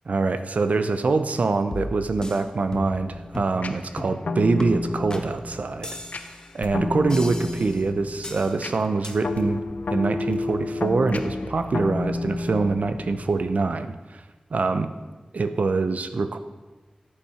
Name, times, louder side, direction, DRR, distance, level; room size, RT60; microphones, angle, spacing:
voice 1, 0.1-6.0 6.5-9.6 9.9-14.2 14.5-14.9 15.3-16.4, right 3 dB, 75° right, 10 dB, 0.8 m, -24 dB
sound 1, 1.7-2.4 2.7-3.1 3.3-3.6 4.0-4.2 4.6-4.7 5.1-5.3 5.8-6.5 7.1-7.8 8.2-8.5 9.0-9.1, left 1 dB, 30° left, 1.4 m, -35 dB
sound 2, 2.9-13.5, left 2 dB, 90° left, 0.8 m, -31 dB
sound 3, 5.3-6.9 8.7-9.0 9.3-9.7 10.0-10.5 11.1-12.6, left 3 dB, 65° left, 1.1 m, -47 dB
13.5 x 8.7 x 5.7 m, 1.2 s
wide cardioid pair, 90°, 2 cm